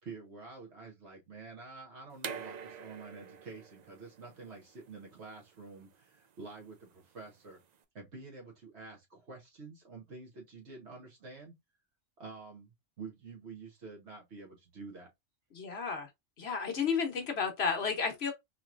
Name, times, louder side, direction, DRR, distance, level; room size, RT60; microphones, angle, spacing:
voice 1, 0.0-7.6 7.9-11.5 12.2-15.1, right 4 dB, 60° right, 1.4 m, -48 dB
sound 1, 2.2-7.8, right 7 dB, 90° right, 0.3 m, -47 dB
voice 2, 15.5-16.1 16.4-18.3, left 5 dB, 60° left, 1.1 m, -32 dB
3.8 x 2.9 x 2.4 m
omnidirectional pair, 1.3 m